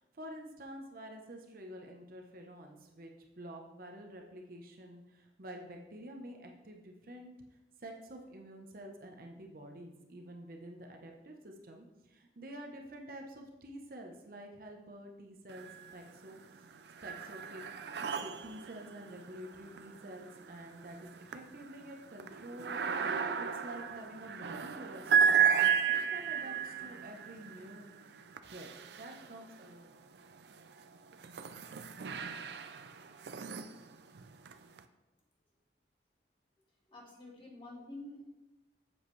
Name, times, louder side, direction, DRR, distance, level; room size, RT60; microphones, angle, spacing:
voice 1, 0.0-7.3 7.8-16.4 17.0-17.6 18.2-22.7 23.3-27.9 28.4-30.0, right 1 dB, 50° right, 2 dB, 0.9 m, -49 dB
sound 1, 15.5-16.2 16.5-29.7 30.3-34.8, right 7 dB, 70° right, 0.5 m, -34 dB
voice 2, 36.8-38.2, left 1 dB, 30° left, -3 dB, 1.8 m, -48 dB
7.8 x 7.3 x 3.2 m, 0.99 s
head